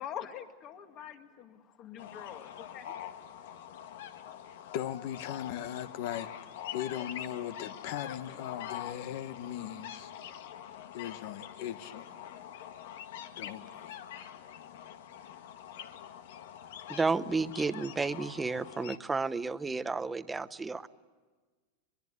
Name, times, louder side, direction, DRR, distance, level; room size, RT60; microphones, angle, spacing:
voice 1, 0.0-3.0, left 9 dB, 35° left, 2.0 m, -44 dB
sound 1, 2.0-19.0, left 10 dB, 75° left, 1.6 m, -45 dB
voice 2, 4.7-6.3 6.7-10.1 10.9-12.1 13.4-14.0, left 11 dB, 60° left, 1.3 m, -38 dB
voice 3, 16.9-20.9, right 4 dB, 10° right, 0.8 m, -32 dB
23.0 x 22.5 x 9.5 m
supercardioid pair, 145°, 0 cm